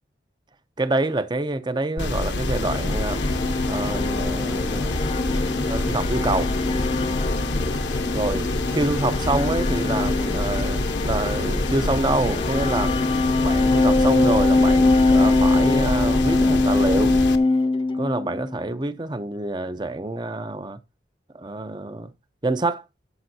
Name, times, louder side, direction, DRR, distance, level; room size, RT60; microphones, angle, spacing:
voice 1, 0.8-3.2 3.6-4.9 5.6-6.5 8.1-12.9 13.4-17.2 18.0-20.8 21.3-22.1 22.4-22.8, right 2 dB, 25° right, 0.6 m, -26 dB
sound 1, 2.0-17.4, left 2 dB, 75° left, 0.9 m, -26 dB
sound 2, 2.3-18.6, left 2 dB, 25° left, 0.4 m, -23 dB
12.0 x 6.9 x 2.8 m
head